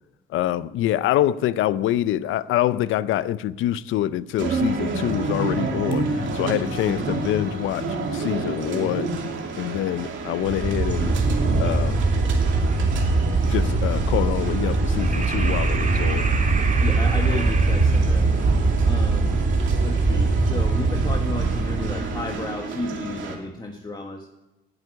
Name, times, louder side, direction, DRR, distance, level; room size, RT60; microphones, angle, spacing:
voice 1, 0.3-7.8 8.1-9.1 9.6-11.1 11.6-12.0 13.5-16.3, left 13 dB, 85° left, 0.5 m, -25 dB
sound 1, 4.4-23.4, right 3 dB, 75° right, 2.3 m, -30 dB
sound 2, 10.4-22.3, right 3 dB, 40° right, 2.0 m, -21 dB
voice 2, 16.8-18.3 18.8-19.3 19.8-24.3, left 2 dB, 20° left, 1.4 m, -32 dB
9.9 x 8.0 x 9.5 m
cardioid pair, 90°, 20 cm